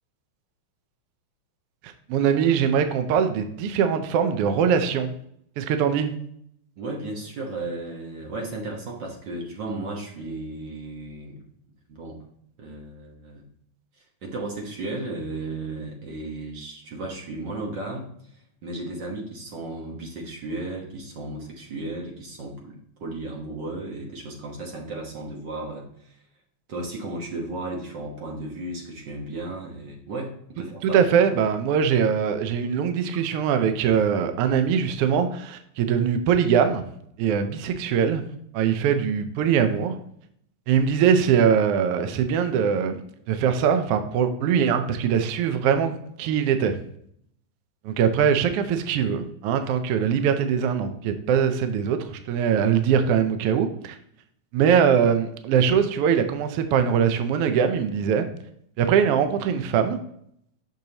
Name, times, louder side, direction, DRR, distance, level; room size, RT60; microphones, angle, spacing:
voice 1, 2.1-5.1 5.6-6.1 30.8-36.8 37.2-38.2 38.5-40.0 40.7-43.0 43.3-46.8 47.8-53.9 54.5-58.3 58.8-60.0, right 7 dB, 85° right, 8 dB, 1.3 m, -22 dB
voice 2, 6.8-11.4 11.9-12.2 12.6-13.4 14.0-18.1 18.3-22.7 23.0-26.2 26.7-31.0 31.3-31.4, right 2 dB, 55° right, -1 dB, 1.3 m, -34 dB
6.6 x 6.3 x 2.8 m, 0.69 s
omnidirectional pair, 3.3 m